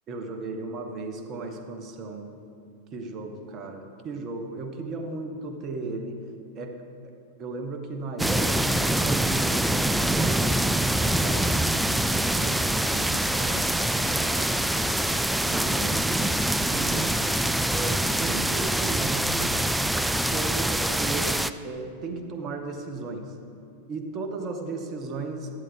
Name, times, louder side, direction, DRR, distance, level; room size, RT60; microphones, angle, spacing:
voice 1, 0.1-2.3 2.9-6.2 6.5-6.8 7.4-14.7 15.4-16.0 16.7-17.2 17.7-19.5 20.3-23.3 23.9-25.5, right 3 dB, 30° right, 5 dB, 1.2 m, -36 dB
sound 1, 8.2-21.5, right 1 dB, 5° right, 0.3 m, -25 dB
12.5 x 12.5 x 3.4 m, 2.6 s
figure-of-eight pair, 90°, 0 cm